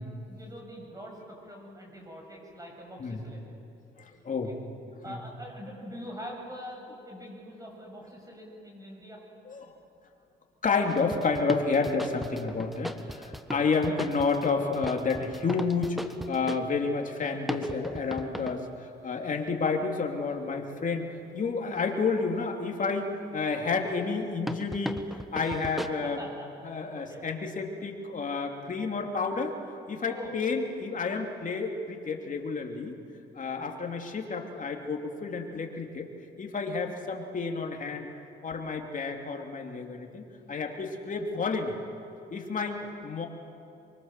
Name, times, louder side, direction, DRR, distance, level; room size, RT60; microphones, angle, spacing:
voice 1, 0.0-3.6 4.5-4.6 5.0-9.2 26.0-27.2 30.1-30.3 33.6-33.7 40.7-40.8 42.6-42.7, equal, 15° right, 0 dB, 7.5 m, -44 dB
voice 2, 4.0-4.5 5.0-5.2 9.5-9.7 10.6-26.3 26.6-29.5 29.9-33.0 33.3-36.1 36.4-38.1 38.4-40.2 40.5-41.8 42.3-43.3, left 4 dB, 40° left, 2 dB, 3.0 m, -30 dB
sound 1, 10.9-16.6 17.5-18.6 24.5-25.9, equal, ahead, 1.3 m, -37 dB
24.0 x 24.0 x 7.6 m, 2.7 s
cardioid pair, 90°, 20 cm